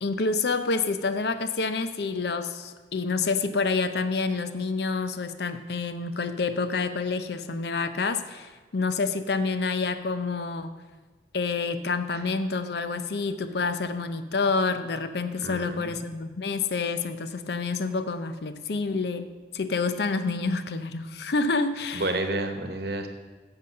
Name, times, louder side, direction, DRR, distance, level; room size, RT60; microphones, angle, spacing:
voice 1, 0.0-10.8 11.3-19.3 19.5-22.2, left 4 dB, 70° left, 10 dB, 0.6 m, -28 dB
voice 2, 15.4-15.9 21.9-23.1, right 2 dB, 65° right, 7 dB, 1.0 m, -30 dB
8.1 x 6.9 x 6.4 m, 1.3 s
head